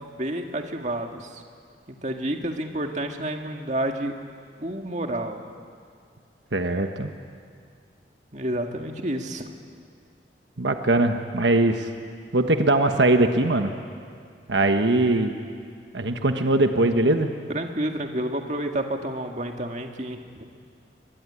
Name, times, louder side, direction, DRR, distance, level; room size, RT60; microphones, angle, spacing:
voice 1, 0.1-1.4 2.0-4.2 4.6-5.4 8.3-9.5 17.5-20.5, right 1 dB, 40° right, 3 dB, 1.9 m, -29 dB
voice 2, 6.5-7.1 10.6-11.9 12.3-13.7 14.5-15.3 15.9-17.3, right 2 dB, 80° right, 6 dB, 1.3 m, -21 dB
23.5 x 22.0 x 9.9 m, 2.2 s
head